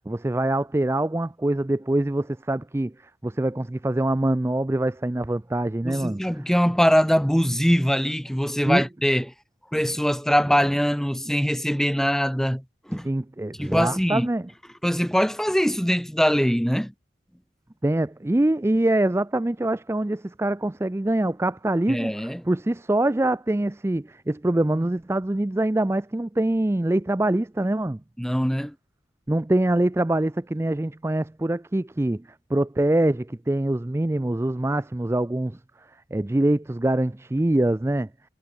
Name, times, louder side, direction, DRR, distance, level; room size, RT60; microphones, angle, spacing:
voice 1, 0.1-2.9 3.2-6.2 8.7-8.8 13.0-14.4 17.8-22.1 22.5-28.0 29.3-32.2 32.5-35.6 36.1-38.1, right 1 dB, 15° right, 0.4 m, -24 dB
voice 2, 5.8-9.3 9.7-13.1 13.6-14.3 14.8-16.9 21.9-22.4 28.2-28.7, equal, 5° left, 2.5 m, -22 dB
head